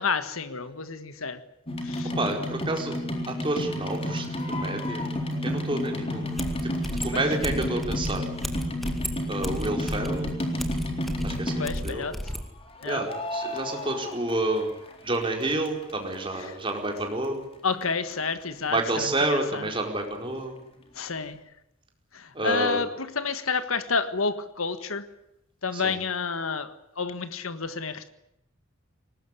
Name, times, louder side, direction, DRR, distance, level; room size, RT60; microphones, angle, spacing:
voice 1, 0.0-1.4 1.8-2.1 7.1-7.2 11.6-12.2 12.8-13.1 16.4-16.5 17.6-19.6 21.0-21.4 22.1-25.0 25.6-28.1, left 4 dB, 90° left, 11 dB, 1.5 m, -30 dB
sound 1, 1.7-12.0 12.8-14.9 15.2-16.2 16.7-16.8 17.0-17.1 17.2-17.3 17.8-17.9 18.1-18.2, left 1 dB, 30° left, 3.8 m, -31 dB
voice 2, 2.2-3.0 3.3-5.1 5.4-6.3 6.6-6.7 7.0-8.3 9.3-10.3 11.2-12.1 12.8-14.7 15.0-17.4 18.7-20.6 22.3-22.8 25.7-26.0, right 2 dB, 25° right, 3 dB, 4.6 m, -29 dB
sound 2, 6.4-12.5, equal, ahead, 2.1 m, -34 dB
22.5 x 19.5 x 10.0 m, 0.83 s
head